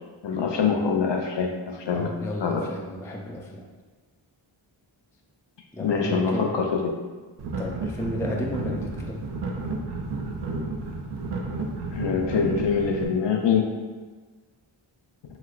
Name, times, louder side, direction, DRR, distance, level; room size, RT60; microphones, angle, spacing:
voice 1, 0.2-2.1 2.4-2.7 5.8-6.9 11.9-13.8, left 6 dB, 60° left, 2 dB, 0.5 m, -24 dB
voice 2, 1.9-3.7 5.7-6.6 7.6-9.3, left 1 dB, 5° left, -1 dB, 0.3 m, -33 dB
sound 1, 7.4-13.1, right 3 dB, 55° right, 0.5 m, -32 dB
3.1 x 2.9 x 2.4 m, 1.4 s
wide cardioid pair, 45°, 49 cm